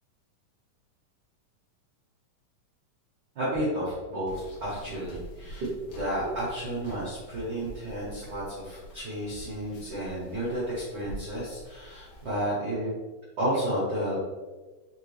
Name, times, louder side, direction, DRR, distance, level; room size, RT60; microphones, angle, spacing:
voice 1, 3.3-12.9 13.4-14.2, right 1 dB, 70° right, -8 dB, 1.0 m, -32 dB
sound 1, 4.3-12.3, right 1 dB, 80° left, 1.3 m, -46 dB
5.2 x 3.1 x 3.1 m, 1.3 s
omnidirectional pair, 3.9 m